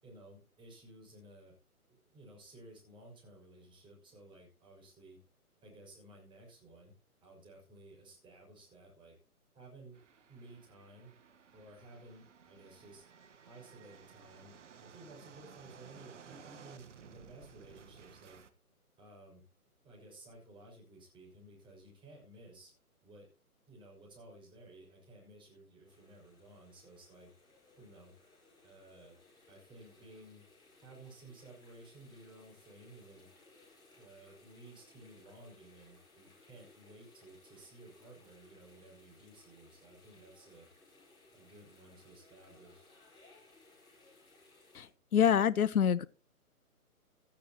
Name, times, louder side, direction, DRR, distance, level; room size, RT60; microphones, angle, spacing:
voice 1, 0.0-1.5 1.9-5.2 5.6-6.9 7.2-9.1 9.5-10.0 10.3-11.1 11.5-13.0 13.4-18.4 19.0-19.4 19.8-22.7 23.0-23.3 23.7-27.3 27.8-28.1 28.6-29.2 29.5-30.4 30.8-33.3 34.0-40.7 41.3-42.9, right 2 dB, 10° right, 6.4 m, -55 dB
sound 1, 9.9-18.5, right 7 dB, 50° right, 1.6 m, -57 dB
sound 2, 25.8-44.9, left 3 dB, 10° left, 5.1 m, -63 dB
voice 2, 44.7-46.1, left 8 dB, 70° left, 0.8 m, -27 dB
16.5 x 13.0 x 3.0 m
figure-of-eight pair, 135°, 45 cm